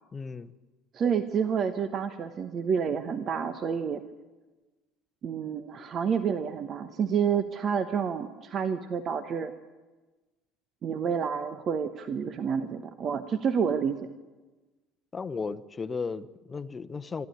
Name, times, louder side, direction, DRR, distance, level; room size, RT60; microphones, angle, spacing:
voice 1, 0.1-0.5 15.1-17.3, left 5 dB, 25° left, 0.9 m, -35 dB
voice 2, 0.9-4.0 5.2-9.5 10.8-14.0, right 7 dB, 40° right, 1.0 m, -29 dB
26.5 x 11.0 x 9.9 m
figure-of-eight pair, 60°, 0 cm